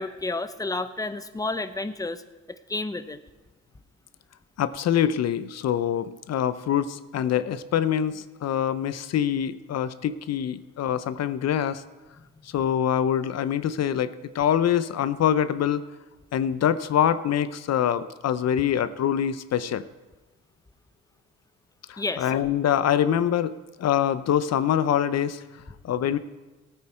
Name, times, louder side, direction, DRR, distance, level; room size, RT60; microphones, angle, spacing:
voice 1, 0.0-2.2 2.7-3.2 22.0-22.2, left 2 dB, 10° left, 11 dB, 0.8 m, -30 dB
voice 2, 4.6-11.8 12.4-15.8 16.3-19.9 21.9-25.4 25.8-26.2, left 9 dB, 60° left, 14 dB, 0.6 m, -25 dB
17.5 x 9.0 x 4.4 m, 1.2 s
cardioid pair, 90°, 30 cm